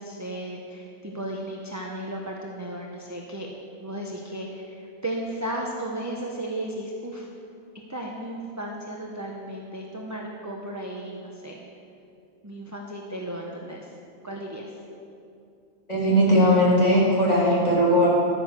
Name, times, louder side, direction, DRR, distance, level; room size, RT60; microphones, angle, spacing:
voice 1, 0.0-3.5 3.8-7.3 7.9-11.6 12.4-13.9 14.2-14.7, right 1 dB, 15° right, -1 dB, 0.8 m, -34 dB
voice 2, 15.9-18.1, equal, 30° left, -6 dB, 3.3 m, -19 dB
10.5 x 9.6 x 6.6 m, 2.6 s
omnidirectional pair, 1.4 m